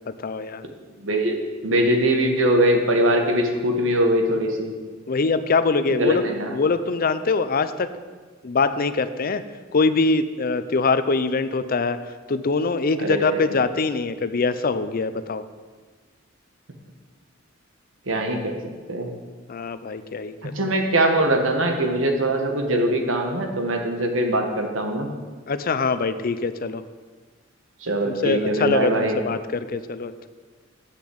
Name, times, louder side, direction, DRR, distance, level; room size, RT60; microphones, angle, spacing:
voice 1, 0.1-0.6 5.1-6.2 6.5-7.9 8.4-9.4 9.7-12.0 12.3-15.4 19.5-20.5 25.5-26.8 28.0-30.1, left 4 dB, 45° left, 12 dB, 0.5 m, -23 dB
voice 2, 1.0-4.7 5.9-6.5 13.0-13.4 18.1-18.6 18.9-19.1 20.4-25.1 27.8-29.2, right 1 dB, 75° right, 4 dB, 1.5 m, -22 dB
8.3 x 6.9 x 7.8 m, 1.4 s
head